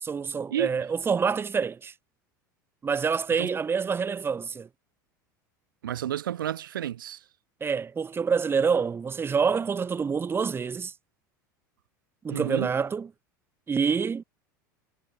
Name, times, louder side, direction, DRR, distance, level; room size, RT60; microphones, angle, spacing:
voice 1, 0.0-1.9 2.8-4.7 7.6-10.9 12.2-13.1 13.7-14.2, right 6 dB, 20° right, 0.9 m, -27 dB
voice 2, 5.8-7.2 12.3-12.7, right 11 dB, 85° right, 0.7 m, -31 dB
hypercardioid pair, 90°, 11 cm